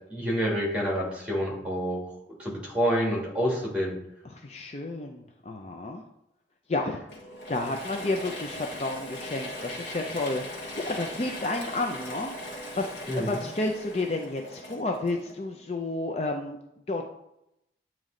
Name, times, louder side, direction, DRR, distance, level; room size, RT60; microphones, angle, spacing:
voice 1, 0.0-2.0 2.4-4.0 13.1-13.5, equal, 5° right, -3 dB, 1.8 m, -28 dB
voice 2, 4.2-6.0 6.7-7.0 7.5-12.3 12.8-16.6 16.9-17.1, left 2 dB, 35° left, 3 dB, 0.4 m, -31 dB
Mechanisms / Drill, 7.1-15.7, left 1 dB, 85° left, 1.4 m, -40 dB
8.9 x 3.1 x 3.8 m, 0.82 s
head